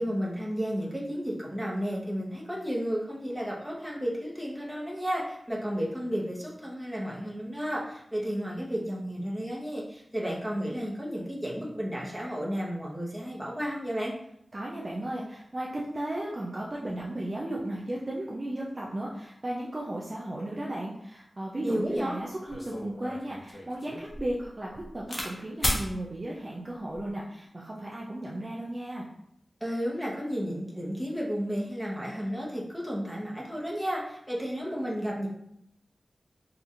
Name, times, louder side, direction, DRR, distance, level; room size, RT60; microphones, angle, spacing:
voice 1, 0.0-14.1 21.6-22.2 29.6-35.3, equal, 5° right, -4 dB, 0.9 m, -32 dB
voice 2, 14.5-29.1, right 1 dB, 35° right, -4 dB, 0.5 m, -35 dB
sound 1, 22.5-25.3 25.6-25.9 26.7-27.1, left 1 dB, 50° left, 0.7 m, -34 dB
4.2 x 2.5 x 2.5 m, 0.75 s
wide cardioid pair, 75°, 0 cm